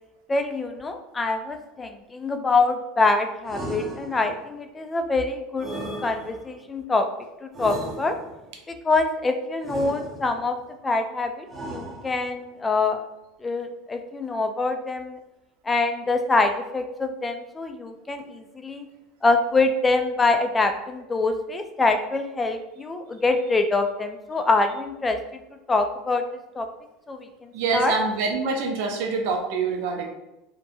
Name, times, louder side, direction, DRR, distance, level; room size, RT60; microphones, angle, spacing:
voice 1, 0.3-5.7 6.0-7.1 7.4-8.2 8.7-10.6 10.8-13.0 13.4-15.2 15.7-18.9 19.2-25.2 25.7-26.2 26.5-26.7 27.1-27.3 27.7-28.0, left 3 dB, 20° left, 7 dB, 0.3 m, -25 dB
sound 1, 3.4-4.5 5.6-6.6 7.5-8.5 9.6-10.5 11.5-12.4, right 1 dB, 25° right, 0.7 m, -36 dB
voice 2, 27.5-30.1, right 4 dB, 70° right, 3 dB, 0.5 m, -25 dB
2.6 x 2.1 x 2.7 m, 0.94 s
supercardioid pair, 105°, 0 cm